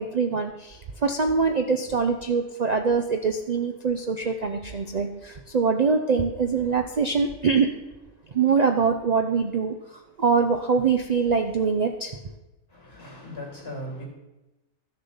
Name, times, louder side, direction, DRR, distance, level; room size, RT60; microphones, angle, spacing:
voice 1, 0.0-7.7 8.3-12.2, right 5 dB, 70° right, 5 dB, 0.3 m, -24 dB
voice 2, 12.7-14.0, equal, 40° left, 0 dB, 3.2 m, -38 dB
13.0 x 6.7 x 5.6 m, 1.0 s
omnidirectional pair, 1.6 m